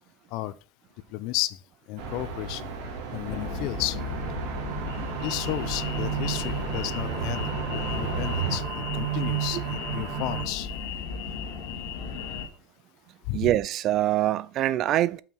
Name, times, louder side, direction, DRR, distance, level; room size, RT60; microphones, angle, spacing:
voice 1, 1.1-1.6 1.9-2.7 3.1-4.0 5.1-8.6 8.9-10.7 13.3-13.5, left 16 dB, 65° left, 0.5 m, -33 dB
sound 1, 2.0-8.6, right 5 dB, 80° right, 1.8 m, -35 dB
sound 2, 3.3-12.5, left 5 dB, 85° left, 1.9 m, -35 dB
sound 3, 4.0-10.5, right 15 dB, 65° right, 0.8 m, -34 dB
voice 2, 13.3-15.2, right 13 dB, 45° right, 0.3 m, -24 dB
5.8 x 4.5 x 5.4 m
supercardioid pair, 130°, 0 cm